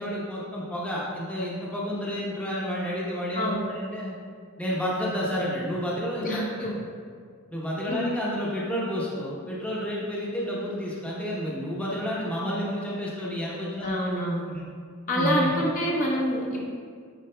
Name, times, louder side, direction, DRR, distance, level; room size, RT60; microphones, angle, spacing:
voice 1, 0.0-4.1 4.6-6.7 7.5-13.9 14.5-14.6 15.1-15.5, equal, 5° left, -6 dB, 0.8 m, -30 dB
voice 2, 3.3-3.7 6.2-6.7 7.9-8.0 13.8-14.4 15.1-16.7, equal, 35° left, -3 dB, 0.7 m, -26 dB
9.0 x 4.7 x 2.2 m, 2.1 s
head